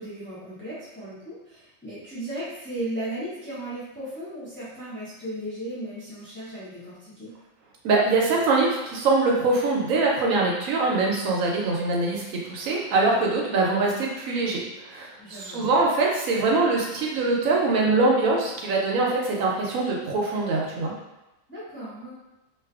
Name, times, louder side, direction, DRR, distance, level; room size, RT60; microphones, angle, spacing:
voice 1, 0.0-7.3 15.2-15.8 21.5-22.1, right 1 dB, 15° left, -11 dB, 0.5 m, -36 dB
voice 2, 7.8-20.9, right 3 dB, 75° right, -2 dB, 0.9 m, -23 dB
2.4 x 2.3 x 2.3 m, 0.98 s
omnidirectional pair, 1.4 m